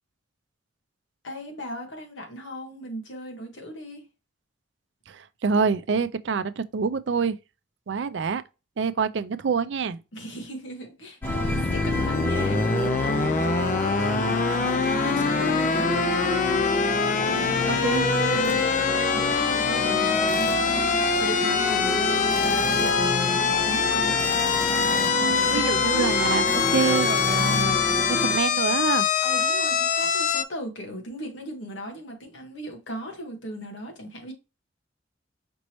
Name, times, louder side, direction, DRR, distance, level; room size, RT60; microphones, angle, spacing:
voice 1, 1.2-4.0 10.1-16.4 18.3-24.2 25.3-25.8 29.2-34.3, equal, 80° left, 1.6 m, -37 dB
voice 2, 5.1-7.4 7.9-8.4 8.8-10.0 17.3-18.1 25.3-27.8 28.1-29.1, right 5 dB, 70° right, 0.4 m, -26 dB
sound 1, 11.2-30.4, left 6 dB, 45° left, 0.4 m, -24 dB
sound 2, 11.2-28.4, equal, 10° left, 0.7 m, -29 dB
sound 3, 18.4-18.7 20.3-20.8 22.3-23.1 24.2-25.3 26.5-27.7, left 2 dB, 65° left, 1.1 m, -37 dB
5.2 x 3.0 x 3.0 m
head